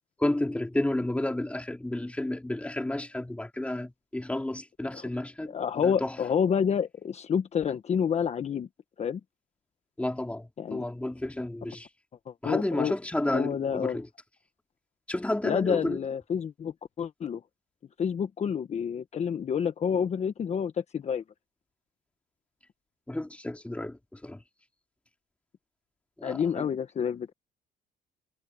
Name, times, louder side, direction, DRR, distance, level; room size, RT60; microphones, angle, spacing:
voice 1, 0.2-6.2 10.0-11.9 12.4-14.1 15.1-16.0 23.1-24.4 26.2-26.6, left 1 dB, 5° left, 2.8 m, -31 dB
voice 2, 5.5-8.7 9.0-9.2 10.6-10.8 12.3-12.9 13.3-14.0 15.4-17.4 18.0-21.2 26.2-27.3, left 7 dB, 40° left, 1.2 m, -29 dB
cardioid pair, 110°, 17 cm